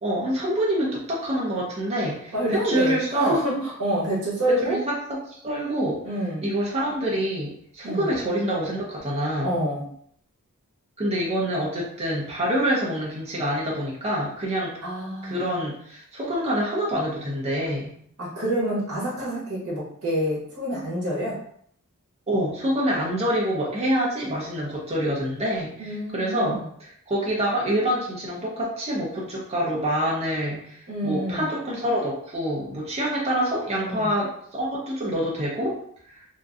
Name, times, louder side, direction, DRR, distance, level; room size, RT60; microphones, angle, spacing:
voice 1, 0.0-3.3 4.6-5.0 5.3-6.0 6.4-9.5 11.0-14.7 15.2-17.9 22.3-34.3 34.6-35.8, equal, 30° right, -4 dB, 0.7 m, -26 dB
voice 2, 2.3-4.8 6.0-6.4 7.8-8.1 9.4-9.8 14.8-15.5 18.2-21.4 25.8-26.7 30.9-31.5 33.9-34.1, right 1 dB, 70° right, -5 dB, 1.0 m, -27 dB
2.9 x 2.5 x 2.4 m, 0.64 s
head